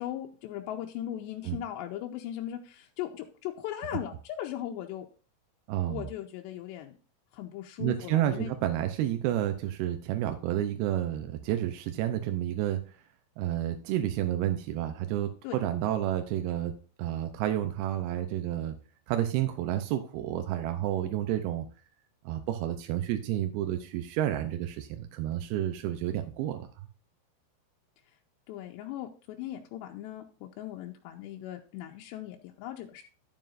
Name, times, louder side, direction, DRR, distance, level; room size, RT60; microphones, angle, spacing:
voice 1, 0.0-5.1 5.9-7.0 7.3-8.5 15.4-15.6 28.5-33.0, left 12 dB, 85° left, 2 dB, 2.8 m, -38 dB
voice 2, 5.7-6.1 7.8-12.8 13.4-16.7 17.0-18.8 19.1-21.7 22.3-26.7, right 12 dB, 80° right, 7 dB, 2.4 m, -30 dB
12.0 x 7.8 x 2.6 m, 0.38 s
omnidirectional pair, 5.1 m